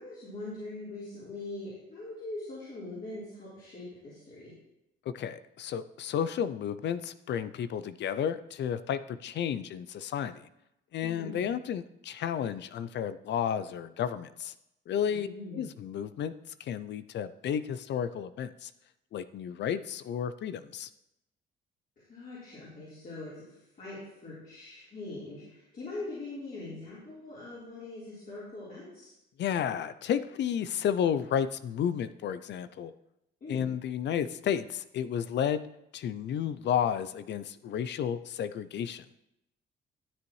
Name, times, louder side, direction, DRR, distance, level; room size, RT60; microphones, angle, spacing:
voice 1, 0.0-4.5 11.0-11.5 15.1-15.7 22.1-23.4 23.8-29.1 33.4-33.7, left 2 dB, 45° left, -9 dB, 3.8 m, -42 dB
voice 2, 5.1-10.5 10.9-14.5 14.9-15.3 15.5-16.3 16.6-18.7 19.1-20.9 29.4-32.9 33.5-35.7 35.9-39.1, left 8 dB, 60° left, 14 dB, 0.4 m, -32 dB
12.5 x 7.0 x 3.1 m, 0.86 s
cardioid pair, 90°, 20 cm